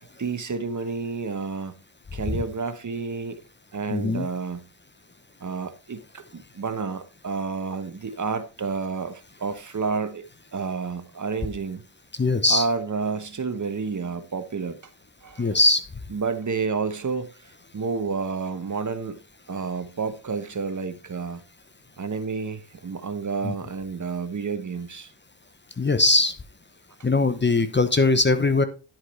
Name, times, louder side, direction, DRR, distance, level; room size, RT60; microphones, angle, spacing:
voice 1, 0.2-1.7 2.1-3.4 3.7-4.7 5.4-10.2 10.5-11.8 12.5-14.8 15.2-15.6 16.1-19.2 19.5-21.4 22.0-25.1, right 4 dB, 40° right, 1.1 m, -30 dB
voice 2, 3.9-4.3 12.2-12.6 15.4-15.8 23.4-23.5 25.8-26.3 27.0-28.7, left 3 dB, 25° left, 0.9 m, -20 dB
10.5 x 4.8 x 4.3 m
cardioid pair, 60°, 44 cm